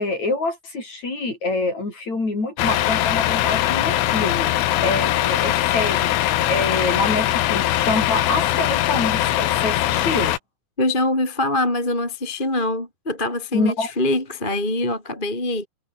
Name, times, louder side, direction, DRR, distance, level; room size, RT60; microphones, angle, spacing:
voice 1, 0.0-10.3 13.5-13.9, left 3 dB, 35° left, 8.7 m, -26 dB
Truck, 2.6-10.4, left 14 dB, 80° left, 4.1 m, -21 dB
voice 2, 10.8-15.7, left 2 dB, 10° left, 4.2 m, -23 dB
omnidirectional pair, 5.6 m